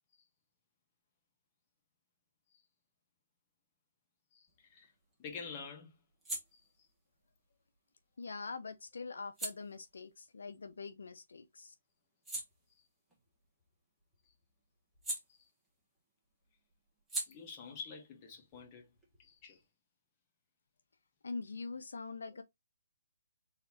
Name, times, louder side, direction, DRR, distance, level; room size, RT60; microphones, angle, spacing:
voice 1, 4.3-4.9 5.2-5.9 6.5-6.7 12.8-12.9 14.2-14.3 15.3-15.5 17.2-18.9 19.2-19.6, left 5 dB, 30° left, 1.5 m, -48 dB
sound 1, 4.5-11.4 11.8-16.0 16.2-19.7, right 2 dB, 5° right, 1.4 m, -48 dB
voice 2, 8.2-11.7 21.2-22.4, left 4 dB, 80° left, 0.6 m, -44 dB
4.1 x 3.8 x 2.9 m
hypercardioid pair, 155°, 0 cm